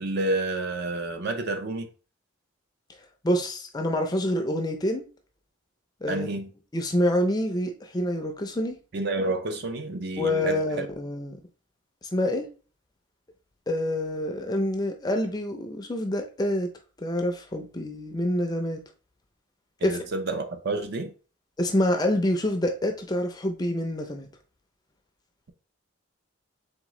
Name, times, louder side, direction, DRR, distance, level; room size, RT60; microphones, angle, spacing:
voice 1, 0.0-1.9 6.1-6.5 8.9-10.9 19.8-21.1, right 2 dB, 50° right, 0.4 m, -29 dB
voice 2, 3.2-5.0 6.0-6.3 6.7-8.8 10.2-11.4 12.1-12.5 13.7-16.7 17.0-18.8 19.8-20.0 21.6-24.3, left 1 dB, 20° left, 0.4 m, -27 dB
3.8 x 3.7 x 3.0 m
head